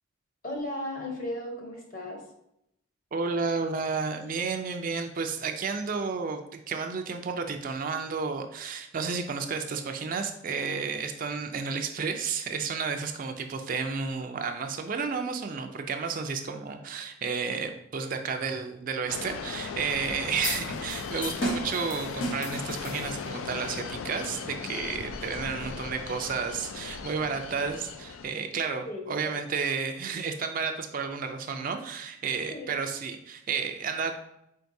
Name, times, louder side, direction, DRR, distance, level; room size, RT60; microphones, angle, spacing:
voice 1, 0.4-2.2 25.4-25.7 28.8-29.6 32.5-32.7, left 1 dB, 45° left, 1 dB, 1.0 m, -36 dB
voice 2, 3.1-34.1, right 5 dB, 45° right, 6 dB, 0.4 m, -32 dB
sound 1, 19.1-28.3, left 5 dB, 85° left, 0.4 m, -38 dB
sound 2, 20.4-23.5, equal, 70° left, 0.9 m, -35 dB
4.6 x 4.4 x 2.6 m, 0.79 s
head